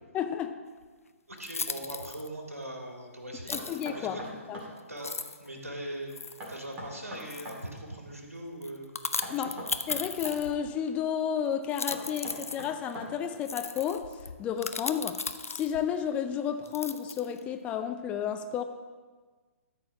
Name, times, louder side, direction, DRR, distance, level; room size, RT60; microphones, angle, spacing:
voice 1, 0.1-0.6 3.5-4.2 4.5-4.6 9.3-9.6 9.9-14.1 14.4-15.2 15.6-18.6, left 8 dB, 15° left, 7 dB, 0.4 m, -31 dB
sound 1, 0.8-0.9 1.4-2.3 3.5-3.9 4.6-4.7 5.0-5.5 6.1-6.6 7.2-7.7 8.6-10.8 11.6-15.9 16.7-17.4, left 4 dB, 70° left, 0.6 m, -36 dB
voice 2, 1.3-4.2 4.9-9.0 9.4-9.6, right 1 dB, 75° right, 0 dB, 2.3 m, -41 dB
Knock, 3.5-4.7 6.4-7.6 9.2-10.4 11.9-13.3, equal, 20° right, 2.0 m, -42 dB
13.0 x 4.8 x 6.1 m, 1.4 s
figure-of-eight pair, 125°, 8 cm